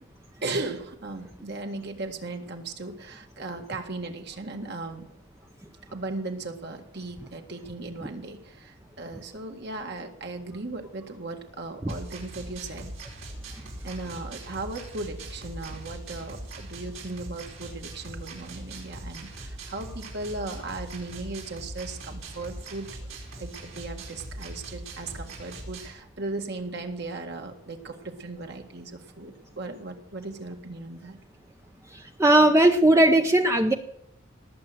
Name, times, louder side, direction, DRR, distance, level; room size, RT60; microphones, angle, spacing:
voice 1, 0.4-5.1 5.9-13.0 13.8-22.9 23.4-31.2, right 2 dB, 55° right, 4 dB, 1.9 m, -37 dB
sound 1, 11.9-25.9, right 2 dB, 80° right, 4.8 m, -41 dB
voice 2, 32.2-33.7, right 1 dB, 15° right, 4 dB, 0.7 m, -18 dB
19.0 x 7.8 x 7.8 m, 0.79 s
head